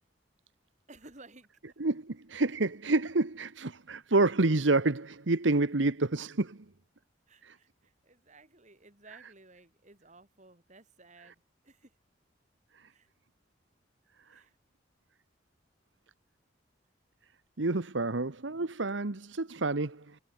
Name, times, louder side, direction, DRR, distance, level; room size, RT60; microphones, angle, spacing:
voice 1, 0.9-1.8 7.3-12.0 12.9-13.1 14.3-14.6, right 2 dB, 40° right, 7.0 m, -56 dB
voice 2, 1.8-6.6 7.4-7.6 12.8-12.9 14.3-14.4 17.6-20.2, right 2 dB, 80° right, 1.2 m, -29 dB
head